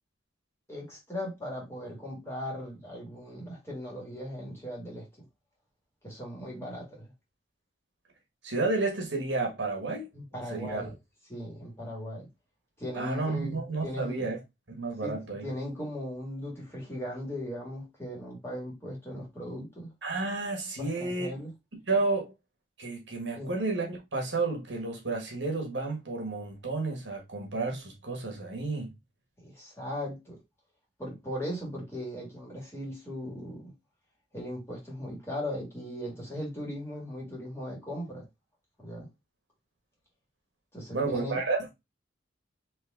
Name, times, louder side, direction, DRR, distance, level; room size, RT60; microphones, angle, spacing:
voice 1, 0.7-5.1 6.0-7.1 10.1-10.9 11.3-12.3 12.8-14.3 15.0-19.9 20.8-21.5 23.3-23.5 29.4-30.4 31.0-33.7 34.3-38.2 38.8-39.1 40.7-41.4, equal, 15° left, 1.9 m, -38 dB
voice 2, 8.4-10.1 10.5-10.8 12.9-14.4 14.7-15.5 20.0-21.3 21.9-22.3 22.8-28.9 40.9-41.7, right 3 dB, 65° right, 1.6 m, -31 dB
4.4 x 3.1 x 3.6 m
head